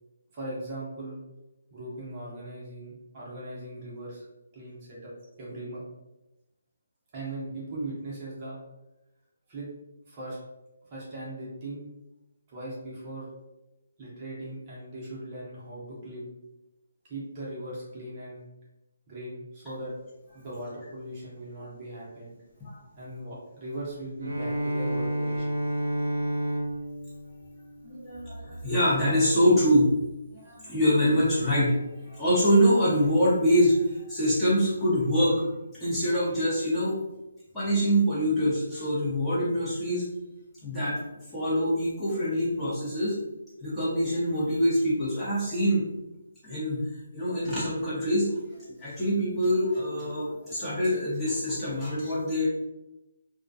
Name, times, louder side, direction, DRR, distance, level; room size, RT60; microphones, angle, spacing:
voice 1, 0.3-1.2 1.7-4.3 4.5-5.1 5.4-5.8 7.1-8.6 9.5-9.7 10.1-10.4 10.9-11.8 12.5-13.3 14.0-16.2 17.0-18.4 19.1-19.9 20.3-22.3 23.0-25.5, right 1 dB, 30° right, -6 dB, 0.8 m, -39 dB
Bowed string instrument, 24.2-28.5, right 1 dB, 85° right, 0.5 m, -31 dB
voice 2, 27.8-29.9 30.3-35.5 35.8-37.0 37.5-40.1 40.6-41.0 41.3-43.1 43.6-45.9 46.4-48.3 48.8-52.5, equal, 10° left, -11 dB, 0.8 m, -25 dB
2.3 x 2.2 x 2.6 m, 0.98 s
hypercardioid pair, 155°, 0 cm